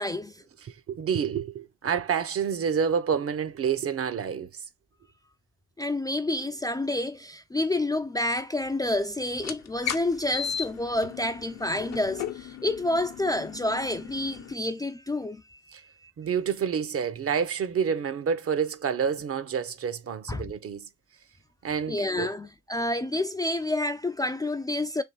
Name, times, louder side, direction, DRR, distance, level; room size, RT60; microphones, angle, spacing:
voice 1, 0.0-0.4 5.8-16.1 20.3-20.5 21.9-25.0, left 1 dB, 15° left, 0.4 m, -29 dB
voice 2, 0.6-4.6 15.7-15.8 16.2-20.9 21.6-22.3, right 7 dB, 50° right, 0.8 m, -28 dB
sound 1, 9.3-14.5, left 9 dB, 60° left, 0.8 m, -36 dB
3.6 x 3.0 x 4.3 m
cardioid pair, 90°, 30 cm